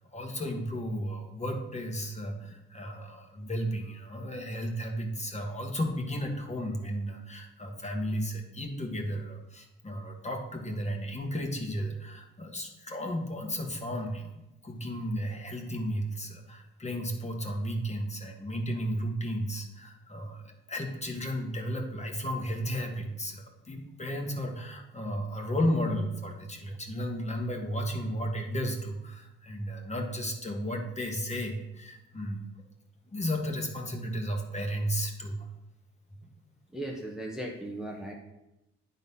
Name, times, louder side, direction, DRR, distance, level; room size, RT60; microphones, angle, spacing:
voice 1, 0.0-32.4 33.1-35.5 36.2-36.3, equal, 20° left, 3 dB, 1.4 m, -34 dB
voice 2, 36.7-38.1, right 1 dB, ahead, -1 dB, 1.0 m, -37 dB
9.1 x 4.1 x 5.5 m, 0.93 s
cardioid pair, 90°, 30 cm